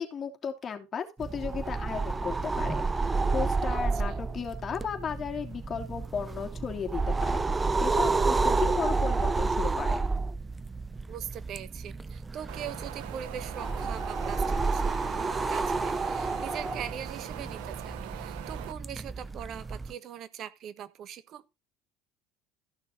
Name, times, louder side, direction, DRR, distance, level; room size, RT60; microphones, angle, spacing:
voice 1, 0.0-10.1, left 7 dB, 35° left, 3.1 m, -35 dB
sound 1, 1.2-19.9, right 3 dB, 20° right, 0.8 m, -30 dB
voice 2, 11.1-21.4, right 9 dB, 55° right, 1.3 m, -41 dB
Wind, 12.5-18.7, right 12 dB, 70° right, 1.3 m, -42 dB
14.5 x 6.5 x 4.0 m
hypercardioid pair, 70°, 0 cm